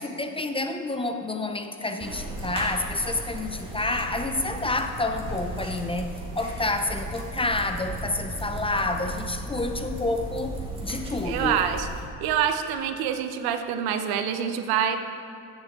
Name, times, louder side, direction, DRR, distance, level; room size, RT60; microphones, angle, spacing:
voice 1, 0.0-11.6, left 2 dB, 15° left, 6 dB, 0.5 m, -29 dB
sound 1, 2.0-12.0, right 1 dB, 15° right, 2.1 m, -36 dB
voice 2, 11.2-11.9 12.2-15.0, right 8 dB, 75° right, 8 dB, 0.9 m, -26 dB
14.5 x 7.3 x 3.7 m, 2.7 s
supercardioid pair, 95°, 38 cm